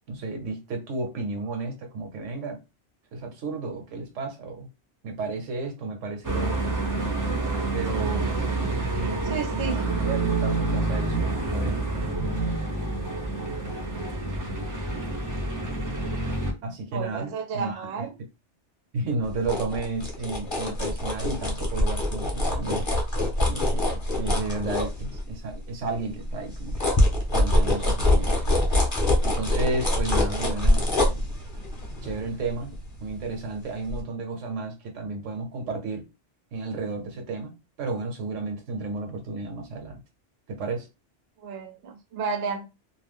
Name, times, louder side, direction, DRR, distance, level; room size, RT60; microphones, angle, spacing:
voice 1, 0.1-2.6 3.1-4.7 5.0-6.6 7.7-11.8 16.6-18.1 18.9-22.9 23.4-26.8 27.3-28.4 29.2-31.3 32.0-32.7 33.0-36.0 36.5-40.0 40.5-40.9, right 3 dB, 80° right, 1.1 m, -33 dB
sound 1, 6.2-16.5, right 2 dB, 25° right, 0.5 m, -28 dB
voice 2, 9.2-9.8 16.9-18.1 41.4-42.7, right 5 dB, 65° right, 0.8 m, -32 dB
sound 2, 19.2-25.5 25.9-33.5 33.9-34.0, left 1 dB, 25° left, 0.8 m, -25 dB
2.4 x 2.2 x 3.4 m
omnidirectional pair, 1.2 m